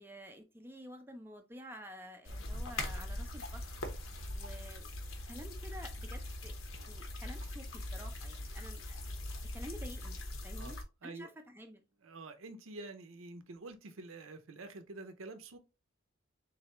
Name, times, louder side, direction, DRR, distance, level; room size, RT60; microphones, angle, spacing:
voice 1, 0.0-3.9 4.3-4.9 5.3-6.6 6.9-9.0 9.5-10.2 10.4-11.8, equal, 10° right, 0.4 m, -50 dB
sound 1, 2.2-10.8, left 1 dB, 75° left, 0.9 m, -41 dB
voice 2, 12.0-15.6, right 2 dB, 80° right, 0.6 m, -47 dB
4.0 x 3.2 x 2.9 m
head